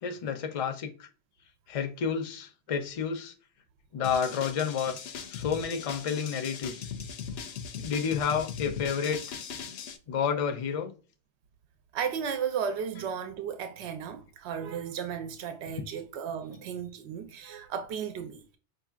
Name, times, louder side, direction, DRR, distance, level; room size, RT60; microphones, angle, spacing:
voice 1, 0.0-1.1 1.7-3.3 3.9-5.0 5.3-6.9 7.8-9.4 10.1-10.9 13.0-13.1 15.8-15.9, left 7 dB, 45° left, 0.5 m, -30 dB
sound 1, 4.0-10.0, left 7 dB, 70° left, 0.8 m, -39 dB
voice 2, 11.9-18.6, right 7 dB, 75° right, 0.9 m, -34 dB
5.0 x 2.7 x 2.4 m
omnidirectional pair, 1.1 m